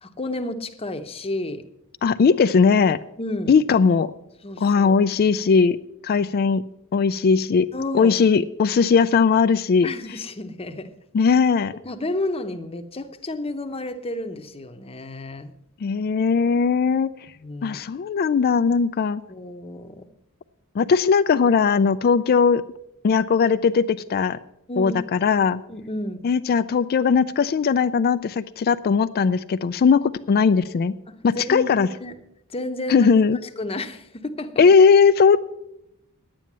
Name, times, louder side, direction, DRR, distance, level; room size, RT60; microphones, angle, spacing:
voice 1, 0.0-1.6 3.2-3.5 4.4-5.0 7.7-8.1 9.8-10.9 11.8-15.5 17.3-17.8 19.3-20.1 24.7-25.0 25.7-26.2 31.1-32.2 32.5-33.1 33.6-34.6, left 2 dB, 25° left, 7 dB, 0.8 m, -31 dB
voice 2, 2.0-3.0 3.5-4.1 4.6-5.8 6.0-6.6 6.9-7.7 7.9-9.9 11.1-11.7 15.8-17.1 17.6-19.2 20.8-22.6 23.0-24.4 24.8-25.6 26.2-31.0 31.2-31.9 32.9-33.4 34.6-35.4, left 5 dB, 45° left, 13 dB, 0.3 m, -18 dB
10.5 x 9.1 x 7.3 m, 0.86 s
head